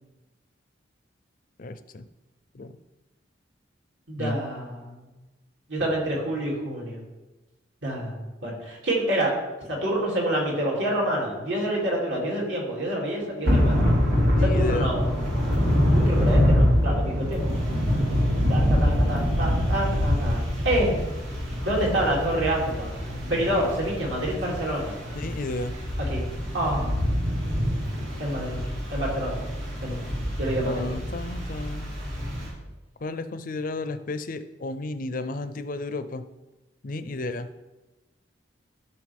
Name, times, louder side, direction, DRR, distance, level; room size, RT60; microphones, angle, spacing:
voice 1, 1.6-2.0 2.5-2.8 4.2-4.4 14.3-15.0 25.2-25.8 30.6-31.9 33.0-36.2 36.8-37.5, left 2 dB, 45° left, 11 dB, 0.5 m, -32 dB
voice 2, 4.1-5.0 5.7-7.0 7.8-9.3 9.7-13.8 14.4-15.1 15.9-17.5 18.5-21.0 21.6-25.0 26.0-26.2 26.5-27.0 28.2-30.1 30.4-30.9, right 1 dB, 65° right, -3 dB, 2.7 m, -27 dB
Thunder / Rain, 13.4-32.5, equal, 85° right, 2.9 m, -25 dB
12.5 x 5.7 x 3.5 m, 1.1 s
head